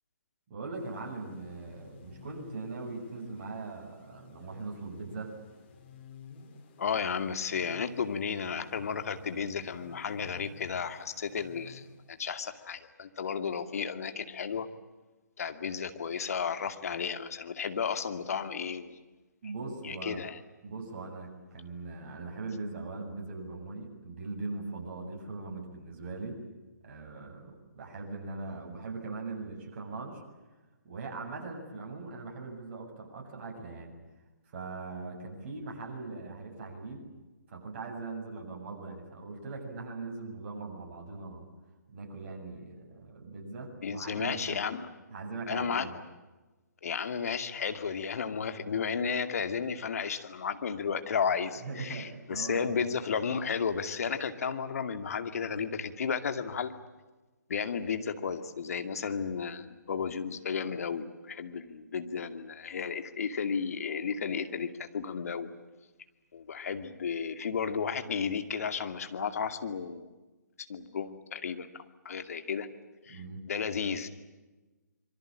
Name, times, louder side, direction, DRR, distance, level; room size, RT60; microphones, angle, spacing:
voice 1, 0.5-5.4 19.4-20.2 20.6-26.4 26.8-30.2 30.8-34.0 34.5-37.1 37.5-41.4 41.9-44.6 45.1-45.9 51.6-52.7 73.1-73.5, right 3 dB, 40° right, 1 dB, 7.8 m, -40 dB
sound 1, 0.7-12.5, left 6 dB, 35° left, 4.7 m, -54 dB
voice 2, 6.8-14.7 15.4-19.0 19.8-20.4 43.8-44.9 45.5-45.9 46.8-56.7 57.5-65.5 66.3-70.0 70.6-72.7 73.0-73.2 73.5-74.1, left 6 dB, 55° left, 9 dB, 2.4 m, -33 dB
26.5 x 23.5 x 8.8 m, 1.2 s
figure-of-eight pair, 140°, 10 cm